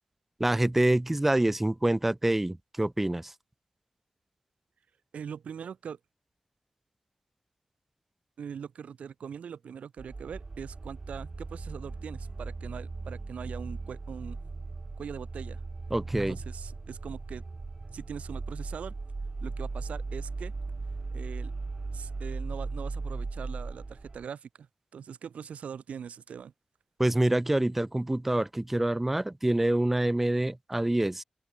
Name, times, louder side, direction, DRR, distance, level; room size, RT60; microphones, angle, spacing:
voice 1, 0.4-3.3 15.9-16.4 27.0-31.2, right 1 dB, 10° right, 0.3 m, -26 dB
voice 2, 5.1-6.0 8.4-14.4 15.0-15.6 16.3-17.4 17.9-18.9 19.4-20.5 21.1-21.5 21.9-24.7 24.9-26.5, right 7 dB, 75° right, 4.3 m, -41 dB
sound 1, 10.0-24.2, right 3 dB, 30° right, 2.7 m, -38 dB
open air
wide cardioid pair, 135°, 2 cm